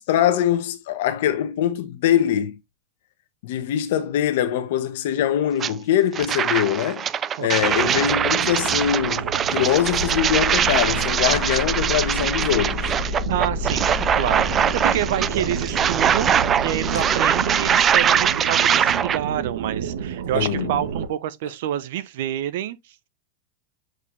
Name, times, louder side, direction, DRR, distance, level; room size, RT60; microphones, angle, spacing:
voice 1, 0.0-2.6 3.4-7.1 7.4-12.9 20.3-20.7, left 10 dB, 60° left, 1.3 m, -23 dB
sound 1, 5.6-5.7 6.1-19.2, right 8 dB, 20° right, 0.4 m, -22 dB
voice 2, 7.4-8.0 13.3-22.8, right 11 dB, 60° right, 1.0 m, -28 dB
sound 2, 7.6-21.1, right 8 dB, 80° right, 1.3 m, -31 dB
sound 3, 9.8-18.5, left 4 dB, 15° left, 1.4 m, -32 dB
8.0 x 4.5 x 3.2 m
supercardioid pair, 175°, 0 cm